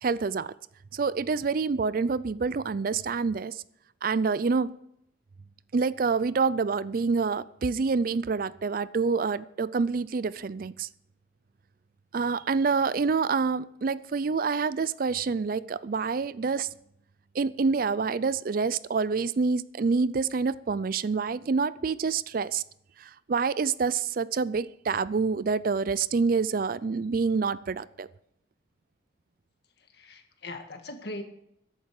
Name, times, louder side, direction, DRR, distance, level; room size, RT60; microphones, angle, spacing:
voice 1, 0.0-0.5 0.9-3.6 4.0-4.7 5.7-10.9 12.1-16.7 17.3-22.6 23.0-28.1, right 4 dB, 50° right, 18 dB, 0.4 m, -27 dB
voice 2, 29.8-31.2, left 1 dB, 60° left, 5 dB, 1.8 m, -40 dB
14.0 x 11.0 x 4.8 m, 0.76 s
head